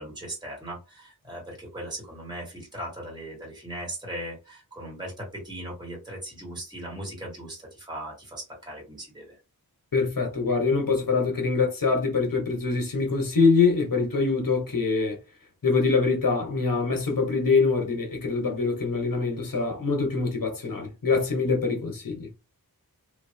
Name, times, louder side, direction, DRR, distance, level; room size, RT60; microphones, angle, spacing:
voice 1, 0.0-9.3, right 1 dB, 10° right, 1.8 m, -38 dB
voice 2, 9.9-15.2 15.6-22.3, left 4 dB, 65° left, 1.4 m, -24 dB
2.9 x 2.8 x 2.8 m
wide cardioid pair, 70°, 36 cm